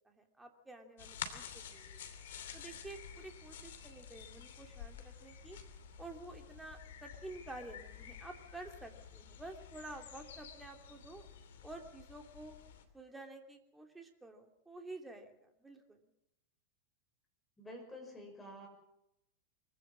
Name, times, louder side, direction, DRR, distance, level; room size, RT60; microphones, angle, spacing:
voice 1, 0.0-2.0 2.5-5.6 6.0-11.2 11.6-12.6 12.9-16.0, right 2 dB, 10° right, 4 dB, 2.8 m, -50 dB
sound 1, 1.0-12.8, left 8 dB, 65° left, 2.8 m, -50 dB
voice 2, 17.6-18.7, left 1 dB, 10° left, 1 dB, 6.2 m, -49 dB
24.0 x 16.5 x 7.4 m, 0.83 s
figure-of-eight pair, 95°, 0 cm